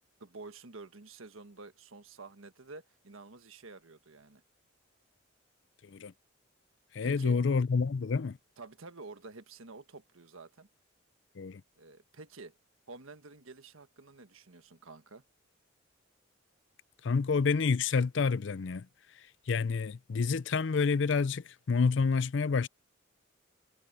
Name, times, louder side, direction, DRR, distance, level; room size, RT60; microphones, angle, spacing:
voice 1, 0.0-4.4 7.0-7.4 8.6-10.7 11.8-12.5 12.9-15.2, right 3 dB, 90° right, 1.4 m, -50 dB
voice 2, 6.9-8.4 11.4-11.6 17.0-18.9 19.5-22.7, left 5 dB, 60° left, 0.5 m, -28 dB
head